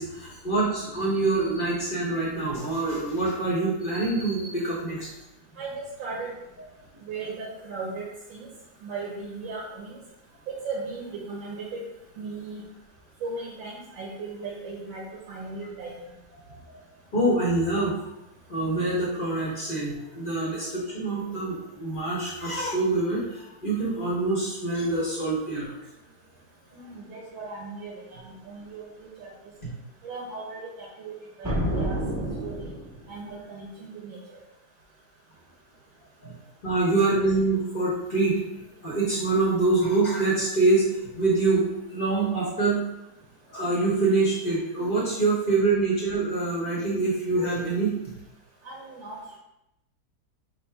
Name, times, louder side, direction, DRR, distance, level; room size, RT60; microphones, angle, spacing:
voice 1, 0.0-5.1 16.4-16.6 17.1-18.0 18.5-25.7 36.2-36.3 36.6-38.4 38.8-42.8 43.5-48.0, right 3 dB, 45° left, -5 dB, 0.7 m, -25 dB
voice 2, 5.6-6.3 7.1-8.0 8.3-8.5 8.8-10.0 10.6-11.8 12.2-12.6 13.2-15.9 26.7-29.3 30.0-32.0 32.4-32.7 33.1-34.2 37.0-37.1 48.6-49.4, right 3 dB, 85° right, -5 dB, 1.6 m, -37 dB
sound 1, 31.4-33.2, right 1 dB, 15° right, 0.6 m, -29 dB
4.1 x 2.0 x 4.3 m, 0.87 s
omnidirectional pair, 2.0 m